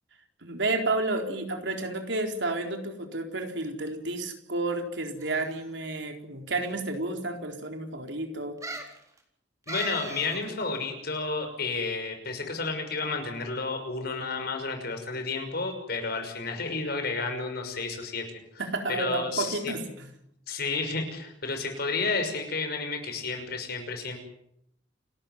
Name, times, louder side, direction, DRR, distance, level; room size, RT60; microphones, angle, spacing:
voice 1, 0.4-8.6 18.6-20.1, right 2 dB, 70° right, 4 dB, 4.1 m, -31 dB
sound 1, 5.2-5.7 6.6-6.7 6.9-7.0 8.6-9.0 9.7-10.4 10.7-10.8, right 2 dB, 20° right, 4.0 m, -38 dB
voice 2, 9.7-18.2 18.5-18.6 18.9-19.7 20.5-24.2, left 3 dB, 55° left, 6 dB, 6.0 m, -31 dB
29.0 x 13.0 x 9.3 m, 0.75 s
head